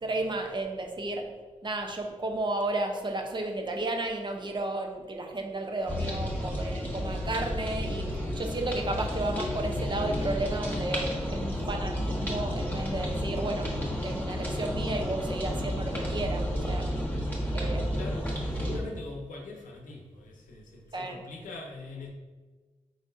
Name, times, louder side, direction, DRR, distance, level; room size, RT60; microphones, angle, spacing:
voice 1, 0.0-1.3 1.6-16.9 17.5-18.0 20.9-21.2, right 2 dB, 35° right, 3 dB, 0.7 m, -33 dB
sound 1, 5.9-18.8, equal, 15° left, 1.4 m, -31 dB
voice 2, 17.9-22.1, left 2 dB, 85° left, 0 dB, 0.8 m, -42 dB
4.8 x 4.0 x 2.7 m, 1.4 s
cardioid pair, 55°, 13 cm